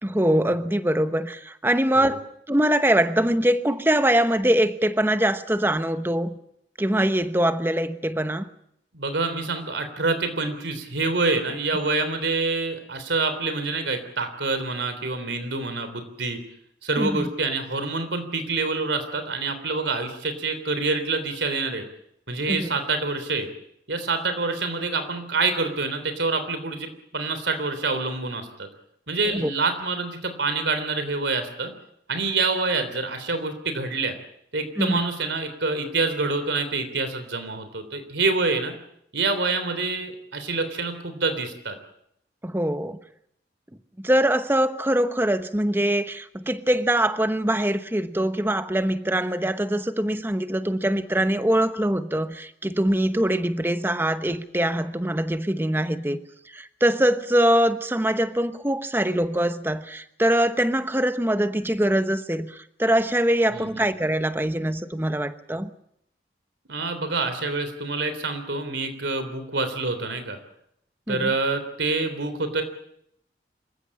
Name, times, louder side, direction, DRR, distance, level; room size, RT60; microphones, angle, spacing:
voice 1, 0.0-6.3 6.8-8.5 17.0-17.3 22.5-22.7 29.3-29.5 34.8-35.0 42.4-43.0 44.0-56.2 56.5-65.7 71.1-71.3, right 1 dB, 10° right, 10 dB, 1.0 m, -23 dB
voice 2, 8.9-16.4 16.8-21.8 22.3-23.5 23.9-28.7 29.1-31.7 32.1-34.1 34.5-38.7 39.1-41.8 63.5-63.8 66.7-70.4 71.1-72.6, right 3 dB, 90° right, 9 dB, 3.5 m, -26 dB
26.0 x 15.0 x 8.8 m, 0.74 s
head